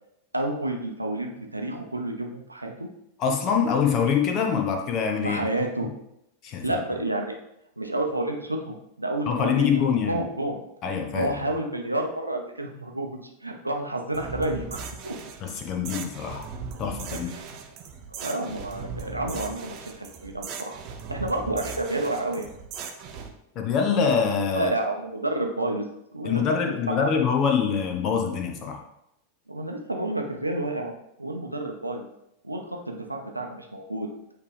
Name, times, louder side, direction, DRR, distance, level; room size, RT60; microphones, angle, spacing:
voice 1, 0.3-2.9 5.2-5.9 6.6-7.3 7.8-9.8 10.1-10.6 11.1-13.1 13.4-15.1 17.3-17.4 18.1-20.8 21.1-22.5 24.5-25.9 26.1-26.4 26.9-27.1 29.5-30.9 31.2-32.1 32.4-34.1, right 1 dB, 85° right, 2 dB, 0.8 m, -30 dB
voice 2, 3.2-5.5 6.4-6.8 9.3-10.2 10.8-11.3 15.4-16.5 16.8-17.3 23.5-24.7 26.2-28.8, left 6 dB, 35° left, 3 dB, 1.0 m, -24 dB
sound 1, 14.1-23.3, right 5 dB, 40° right, 0.7 m, -38 dB
8.6 x 3.4 x 3.4 m, 0.82 s
figure-of-eight pair, 90°, 0 cm